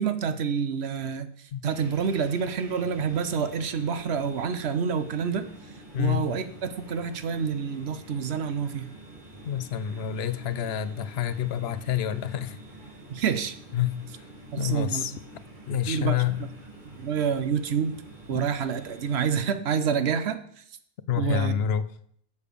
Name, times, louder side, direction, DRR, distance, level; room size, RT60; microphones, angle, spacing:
voice 1, 0.0-5.5 6.0-8.9 13.1-13.5 14.5-15.0 15.9-16.2 16.9-17.9 18.3-20.6 21.2-21.5, right 6 dB, 75° right, 10 dB, 1.0 m, -28 dB
sound 1, 1.7-19.3, right 1 dB, 45° right, 2.0 m, -47 dB
voice 2, 5.9-6.3 9.4-12.6 13.7-14.3 14.6-15.1 15.7-16.4 18.3-18.4 21.1-21.8, left 10 dB, 70° left, 14 dB, 0.8 m, -28 dB
7.0 x 6.6 x 5.1 m, 0.64 s
omnidirectional pair, 1.1 m